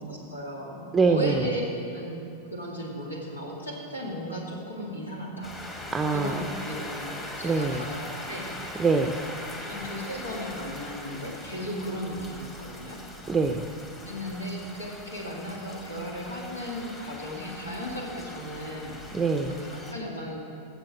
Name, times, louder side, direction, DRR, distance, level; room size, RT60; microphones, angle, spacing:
voice 1, 0.1-1.6 1.9-2.2 2.5-5.5 6.1-7.1 7.4-8.5 9.6-13.0 14.0-19.0 19.6-20.6, equal, 80° left, -1 dB, 2.4 m, -35 dB
voice 2, 0.9-1.5 5.9-6.4 7.4-7.9 8.8-9.2 13.3-13.7 19.1-19.6, right 4 dB, 15° right, 6 dB, 0.6 m, -24 dB
sound 1, 5.4-19.9, left 1 dB, 20° left, 1.8 m, -41 dB
15.0 x 7.1 x 6.2 m, 2.7 s
figure-of-eight pair, 90°, 0 cm